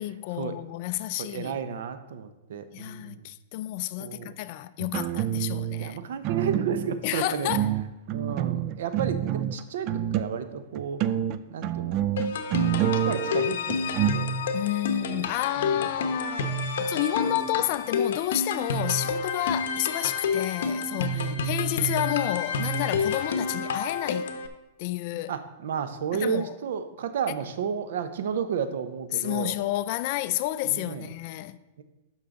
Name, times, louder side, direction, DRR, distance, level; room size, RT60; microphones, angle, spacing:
voice 1, 0.0-1.6 2.7-6.0 7.0-7.7 14.5-24.3 24.8-25.3 26.1-26.6 29.1-31.6, left 16 dB, 45° left, 0.4 m, -30 dB
voice 2, 1.2-3.3 4.0-4.3 5.8-7.5 8.1-11.0 11.5-12.0 12.8-14.3 15.0-15.9 17.3-17.4 21.1-21.5 25.3-29.5 30.7-31.1 31.8-31.9, right 7 dB, 70° right, 0.8 m, -32 dB
sound 1, 4.8-5.9 6.2-7.1 7.5-10.5 10.7-14.2, right 11 dB, 35° right, 0.4 m, -27 dB
sound 2, 12.2-24.5, left 3 dB, 70° left, 0.9 m, -29 dB
12.0 x 5.6 x 3.8 m
supercardioid pair, 155°, 0 cm